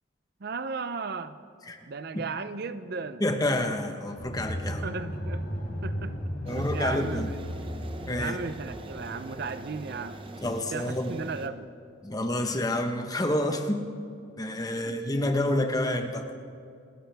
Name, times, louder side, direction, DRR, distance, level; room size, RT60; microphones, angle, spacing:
voice 1, 0.4-1.4 1.9-3.2 4.8-5.4 5.8-7.4 8.1-10.2 10.7-11.7 14.8-15.4, right 4 dB, 55° right, 12 dB, 0.5 m, -36 dB
voice 2, 3.2-4.8 6.5-7.3 8.1-8.4 10.4-11.1 12.0-13.9 14.4-16.3, left 1 dB, 20° left, 5 dB, 1.1 m, -28 dB
sound 1, 4.2-9.2, equal, 70° left, 3.6 m, -35 dB
sound 2, 6.5-11.5, right 1 dB, 30° right, 0.8 m, -42 dB
28.0 x 13.5 x 3.5 m, 2.4 s
head